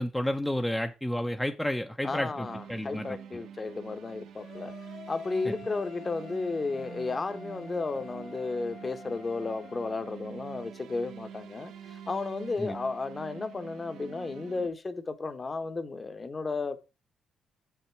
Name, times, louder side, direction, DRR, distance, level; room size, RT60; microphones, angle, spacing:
voice 1, 0.0-3.4 5.4-5.5 12.6-12.7, left 1 dB, 5° left, 0.6 m, -31 dB
voice 2, 2.0-4.7 5.1-16.8, left 3 dB, 30° left, 0.9 m, -33 dB
sound 1, 2.0-14.7, right 8 dB, 80° right, 0.8 m, -46 dB
sound 2, 4.4-10.1, left 4 dB, 60° left, 1.7 m, -49 dB
7.2 x 5.7 x 4.4 m
cardioid pair, 90°, 0 cm